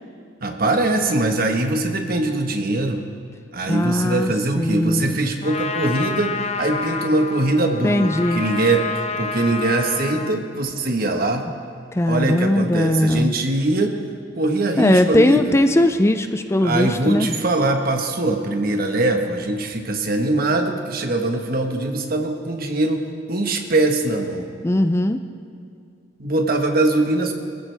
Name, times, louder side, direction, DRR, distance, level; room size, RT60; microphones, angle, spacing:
voice 1, 0.4-3.0 3.5-6.3 6.6-8.8 9.2-11.5 12.1-13.9 14.4-15.5 16.6-24.5 26.2-27.3, right 2 dB, 50° right, 4 dB, 1.4 m, -22 dB
voice 2, 3.7-5.2 7.8-8.4 11.9-13.3 14.8-17.3 24.6-25.2, left 1 dB, 15° left, 8 dB, 0.4 m, -19 dB
Trumpet, 5.4-10.4, left 4 dB, 35° left, 0.8 m, -28 dB
24.0 x 14.5 x 3.5 m, 2.3 s
head